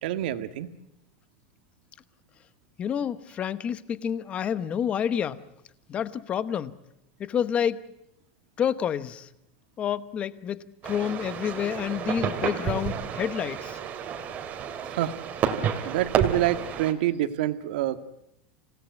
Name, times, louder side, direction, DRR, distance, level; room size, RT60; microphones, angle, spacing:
voice 1, 0.0-0.7 15.0-15.1 15.8-18.1, right 13 dB, 70° right, 1.7 m, -26 dB
voice 2, 2.8-5.4 5.9-6.7 7.2-7.8 8.6-9.3 9.8-10.6 10.8-13.8, left 8 dB, 25° left, 1.0 m, -28 dB
sound 1, 10.8-16.9, right 8 dB, 30° right, 2.3 m, -30 dB
27.0 x 17.5 x 9.4 m
supercardioid pair, 160°, 5 cm